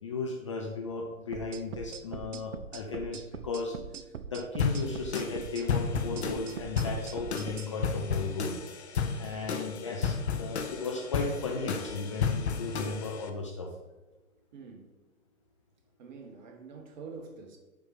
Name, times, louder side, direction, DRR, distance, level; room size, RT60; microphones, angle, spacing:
voice 1, 0.0-3.7 4.3-8.6 9.2-13.7, left 3 dB, 25° left, 0 dB, 0.5 m, -35 dB
sound 1, 1.3-7.7, right 7 dB, 60° right, 0.6 m, -42 dB
sound 2, 4.6-13.3, left 6 dB, 50° left, 0.8 m, -33 dB
voice 2, 14.5-14.9 16.0-17.6, right 4 dB, 35° right, 3 dB, 1.2 m, -46 dB
7.1 x 5.3 x 4.1 m, 1.1 s
figure-of-eight pair, 120°, 42 cm